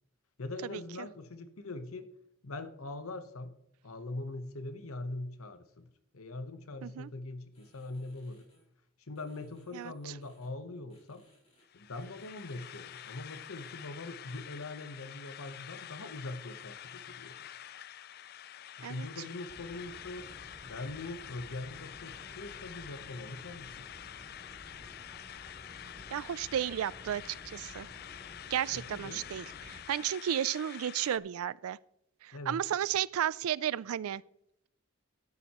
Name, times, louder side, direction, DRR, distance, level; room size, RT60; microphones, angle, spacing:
voice 1, 0.4-2.1 2.4-3.5 3.8-8.5 9.0-11.2 11.7-17.5 18.8-20.3 20.6-23.9 28.7-29.4 32.3-32.6, left 2 dB, 80° left, 1.0 m, -42 dB
sound 1, 7.5-8.6 9.2-10.5 10.9-11.6 11.9-13.9, equal, 30° left, 4.9 m, -67 dB
sound 2, 11.6-31.2, left 11 dB, 45° left, 0.3 m, -47 dB
sound 3, 19.5-29.8, equal, ahead, 3.0 m, -53 dB
voice 2, 26.1-27.9 28.5-31.8 32.2-34.2, right 10 dB, 80° right, 0.3 m, -33 dB
13.0 x 9.7 x 3.0 m
head